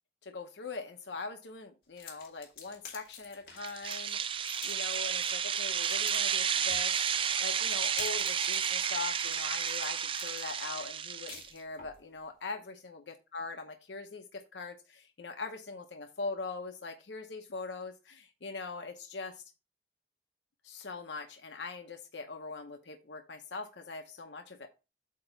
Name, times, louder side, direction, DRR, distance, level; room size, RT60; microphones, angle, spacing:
voice 1, 0.2-6.9 7.4-19.4 20.6-24.7, left 3 dB, 90° left, 5 dB, 0.8 m, -42 dB
sound 1, 1.9-12.0, left 6 dB, 60° left, 2.1 m, -49 dB
sound 2, 3.6-11.5, right 8 dB, 30° right, 0.4 m, -32 dB
8.4 x 2.9 x 5.6 m, 0.29 s
head